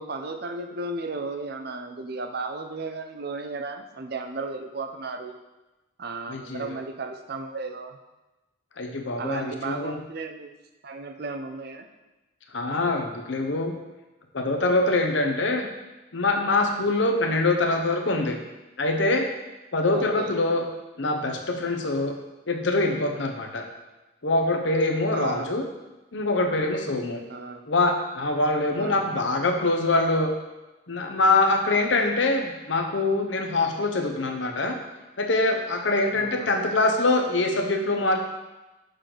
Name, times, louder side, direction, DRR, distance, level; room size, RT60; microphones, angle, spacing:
voice 1, 0.0-5.4 6.0-8.0 9.2-10.5 10.8-11.9 19.9-20.3 25.1-25.5 27.3-27.6 28.8-29.1 36.1-36.5, right 3 dB, 50° right, 5 dB, 0.6 m, -34 dB
voice 2, 6.3-6.7 8.8-10.0 12.5-13.7 14.3-15.7 16.1-18.4 18.8-19.3 19.7-20.6 21.0-22.2 22.5-23.7 24.2-25.6 26.1-27.2 27.7-30.3 30.9-34.8 35.2-38.2, left 2 dB, 65° left, 4 dB, 0.9 m, -24 dB
6.5 x 6.5 x 3.9 m, 1.1 s
head